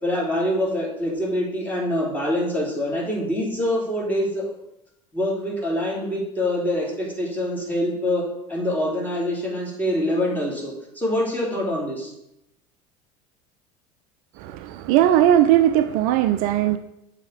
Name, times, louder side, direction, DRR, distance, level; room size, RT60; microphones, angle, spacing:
voice 1, 0.0-4.5 5.1-8.2 8.5-12.1, left 1 dB, 10° left, -3 dB, 3.0 m, -25 dB
voice 2, 14.4-16.8, right 12 dB, 55° right, 10 dB, 0.5 m, -18 dB
7.2 x 4.1 x 6.5 m, 0.83 s
hypercardioid pair, 70°, 18 cm